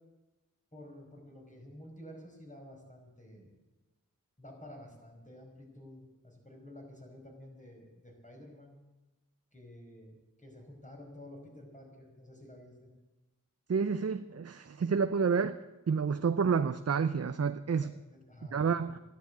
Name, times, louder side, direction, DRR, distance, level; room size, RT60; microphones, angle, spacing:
voice 1, 0.7-3.6 4.4-8.7 9.5-12.9 17.8-19.0, left 1 dB, 25° left, 0 dB, 5.1 m, -51 dB
voice 2, 13.7-15.6 15.9-17.9 18.5-19.0, right 5 dB, 50° right, 11 dB, 0.6 m, -29 dB
13.5 x 11.5 x 8.3 m, 1.1 s
wide cardioid pair, 50°, 33 cm